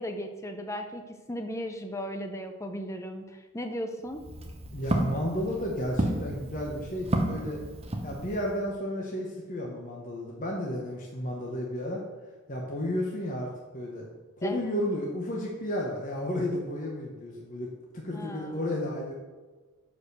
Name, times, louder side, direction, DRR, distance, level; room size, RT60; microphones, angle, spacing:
voice 1, 0.0-4.2 14.4-14.7 18.1-18.8, equal, 15° left, 5 dB, 0.6 m, -36 dB
Walk footsteps, 4.1-8.6, right 1 dB, 25° right, 0.8 m, -32 dB
voice 2, 4.7-7.6 8.0-12.0 12.5-14.1 14.4-19.1, left 1 dB, 35° left, -2 dB, 1.1 m, -32 dB
6.6 x 5.1 x 6.6 m, 1.3 s
head